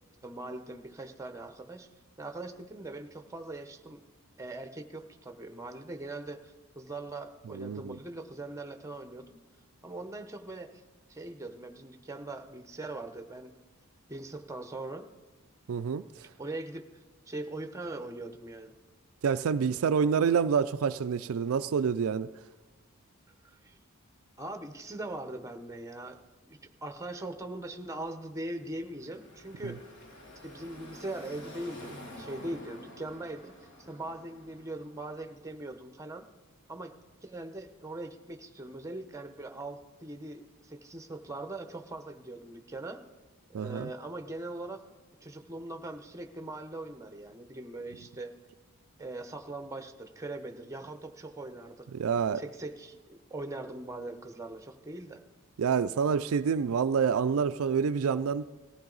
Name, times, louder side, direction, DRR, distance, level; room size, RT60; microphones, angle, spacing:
voice 1, 0.2-1.9 2.2-4.0 4.4-9.4 9.8-10.8 11.1-13.5 14.1-15.1 16.2-16.9 17.3-18.7 23.4-23.8 24.4-26.2 26.5-29.8 30.4-36.3 36.7-36.9 37.2-43.0 43.5-44.8 45.2-48.4 49.0-51.9 52.3-55.2, right 2 dB, 15° right, 0.9 m, -41 dB
voice 2, 7.5-8.0 15.7-16.0 19.2-22.3 43.5-43.9 51.9-52.4 55.6-58.4, right 6 dB, 65° right, 0.4 m, -27 dB
Car passing by / Traffic noise roadway noise, 28.6-35.5, left 1 dB, 55° left, 2.9 m, -49 dB
19.0 x 15.0 x 4.0 m
head